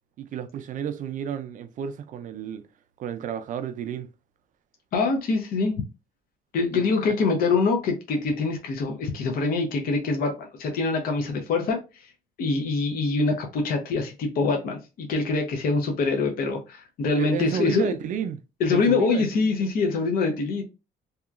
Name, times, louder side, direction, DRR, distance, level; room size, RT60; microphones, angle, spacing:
voice 1, 0.2-2.6 3.0-4.1 6.7-7.0 17.2-18.4 18.7-19.7, right 8 dB, 50° right, 0.4 m, -31 dB
voice 2, 4.9-5.7 6.5-12.1 12.4-17.9 18.6-20.6, left 4 dB, 60° left, 0.6 m, -24 dB
2.8 x 2.3 x 2.4 m
cardioid pair, 110°, 17 cm